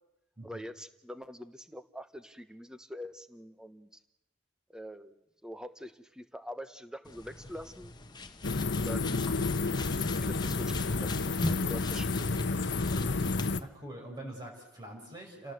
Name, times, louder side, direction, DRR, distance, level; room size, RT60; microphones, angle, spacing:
voice 1, 0.4-3.9 4.7-7.9 8.8-9.3 10.0-11.3 11.7-12.5, equal, 5° right, 11 dB, 1.1 m, -45 dB
sound 1, 7.1-13.5, left 2 dB, 20° left, 1.4 m, -41 dB
sound 2, 8.4-13.6, left 3 dB, 65° left, 0.9 m, -30 dB
voice 2, 13.6-15.5, right 1 dB, 20° right, -1 dB, 5.3 m, -44 dB
29.0 x 18.0 x 8.1 m, 0.91 s
head